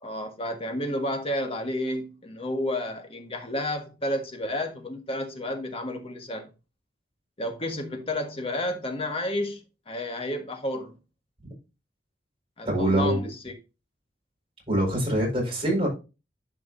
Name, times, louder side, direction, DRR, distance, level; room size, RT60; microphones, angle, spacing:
voice 1, 0.0-6.5 7.4-9.6 9.9-11.0 12.6-13.6, left 1 dB, 30° left, 1.4 m, -31 dB
voice 2, 12.6-13.3 14.7-15.9, right 1 dB, 30° right, 4.7 m, -24 dB
11.5 x 4.9 x 2.6 m
head